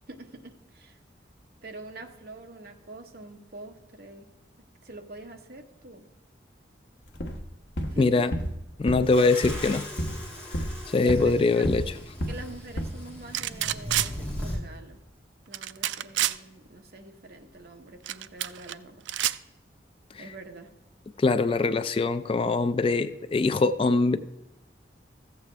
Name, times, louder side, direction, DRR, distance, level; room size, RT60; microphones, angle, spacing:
voice 1, 0.1-1.0 1.6-4.3 4.8-6.1 7.9-8.4 11.0-11.7 12.3-15.0 15.5-19.1 20.2-20.7, right 2 dB, 55° right, 4 dB, 1.0 m, -45 dB
sound 1, 7.1-7.4 7.8-8.0 8.3-8.6 8.9-9.1 9.4-9.7 10.0-10.2 10.5-11.4 11.6-11.9 12.2-12.5 12.8-12.9, equal, 70° left, 1.1 m, -31 dB
voice 2, 8.0-8.3 8.8-9.9 10.9-11.8 21.2-24.2, left 3 dB, 30° left, 11 dB, 0.3 m, -23 dB
sound 2, 9.1-14.6, equal, 5° left, 2.1 m, -39 dB
sound 3, 13.3-14.1 15.5-16.4 18.1-18.7 19.0-19.4, right 13 dB, 80° right, 0.3 m, -27 dB
14.5 x 8.2 x 3.3 m, 0.94 s
head